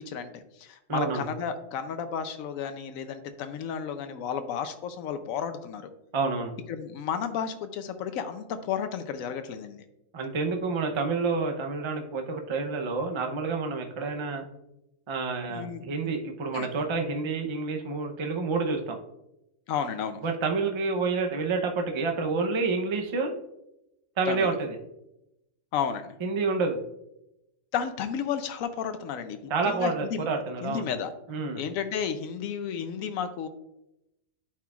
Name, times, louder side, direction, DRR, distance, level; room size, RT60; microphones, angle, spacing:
voice 1, 0.0-5.9 6.7-9.8 15.5-15.8 16.5-16.7 19.7-20.2 24.3-24.6 25.7-26.1 27.7-30.3 30.6-31.1 31.6-33.5, left 7 dB, 90° left, 9 dB, 1.0 m, -32 dB
voice 2, 0.9-1.2 6.1-6.5 10.1-14.4 15.1-19.0 20.2-23.3 24.2-24.8 26.2-26.8 29.5-30.9 31.3-31.6, right 4 dB, 35° right, 4 dB, 0.5 m, -28 dB
11.0 x 4.5 x 2.4 m, 0.87 s
omnidirectional pair, 1.4 m